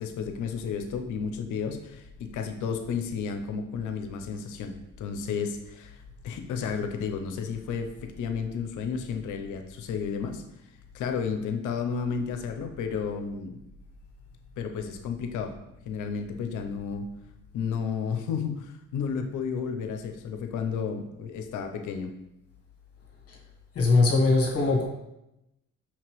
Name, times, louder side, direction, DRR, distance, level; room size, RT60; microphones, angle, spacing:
voice 1, 0.0-10.4 10.9-13.6 14.6-15.5 15.9-17.1 17.5-22.1, left 6 dB, 80° left, 6 dB, 0.6 m, -32 dB
voice 2, 23.7-24.9, left 3 dB, 50° left, -2 dB, 1.3 m, -21 dB
6.0 x 2.9 x 3.0 m, 0.88 s
cardioid pair, 90°, 30 cm